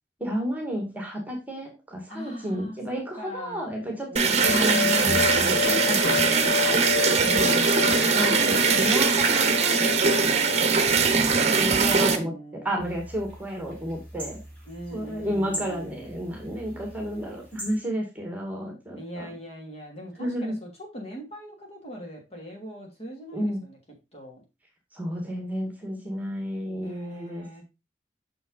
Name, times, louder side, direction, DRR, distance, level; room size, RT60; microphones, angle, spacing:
voice 1, 0.2-4.1 4.4-6.5 7.2-7.6 8.1-14.4 14.9-19.3 20.2-20.6 23.3-23.6 24.9-27.6, equal, 10° right, 2.0 m, -32 dB
voice 2, 2.1-3.7 4.1-5.5 7.2-9.0 10.9-12.7 14.7-16.1 19.0-20.7 20.9-23.8 24.1-24.4 26.8-27.6, equal, 40° left, 3.0 m, -40 dB
sound 1, 4.2-12.2, right 5 dB, 40° right, 1.0 m, -21 dB
sound 2, 4.4-11.2, left 4 dB, 90° left, 2.5 m, -30 dB
sound 3, 12.8-17.8, equal, 10° left, 3.4 m, -41 dB
6.5 x 6.0 x 4.0 m
head